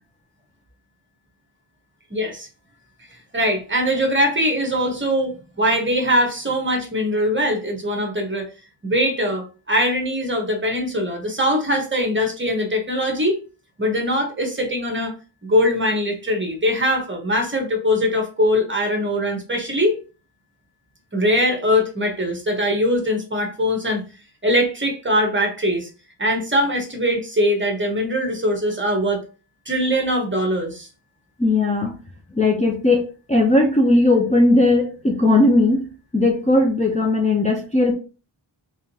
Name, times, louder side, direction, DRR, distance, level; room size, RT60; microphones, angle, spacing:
voice 1, 2.1-2.5 3.3-8.5 8.8-13.4 13.8-15.1 15.4-20.0 21.1-24.0 24.4-25.9 26.2-29.2 29.7-30.9, equal, 25° right, 3 dB, 1.2 m, -21 dB
voice 2, 31.4-32.0 32.3-35.9 36.1-37.9, left 2 dB, 15° left, -1 dB, 0.6 m, -18 dB
3.6 x 3.5 x 2.8 m, 0.34 s
wide cardioid pair, 100°, 49 cm